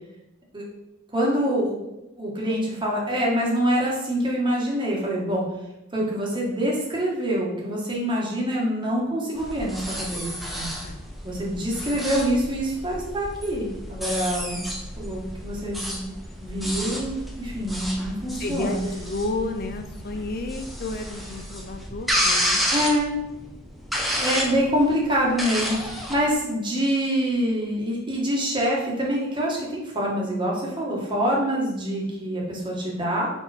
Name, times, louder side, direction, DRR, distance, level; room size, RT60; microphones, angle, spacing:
voice 1, 1.1-1.8 2.2-5.4 5.9-10.3 10.5-10.7 11.2-14.6 15.0-16.1 16.4-18.8 22.7-23.1 24.2-33.3, equal, 25° right, -4 dB, 1.6 m, -25 dB
sound 1, 9.4-26.3, equal, ahead, 0.8 m, -31 dB
voice 2, 18.4-22.6, left 2 dB, 50° left, 6 dB, 0.5 m, -31 dB
5.5 x 4.2 x 4.4 m, 0.92 s
head